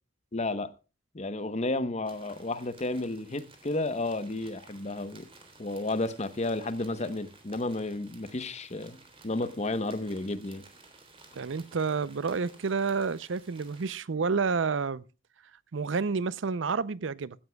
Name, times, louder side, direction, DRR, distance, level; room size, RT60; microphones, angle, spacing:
voice 1, 0.3-0.7 1.1-5.3 5.6-9.0 9.2-10.6, left 2 dB, 35° left, 1.0 m, -32 dB
sound 1, 2.0-13.9, right 3 dB, 30° right, 3.2 m, -55 dB
voice 2, 11.4-15.0 15.7-17.4, right 5 dB, 70° right, 0.6 m, -29 dB
16.0 x 14.0 x 2.3 m
head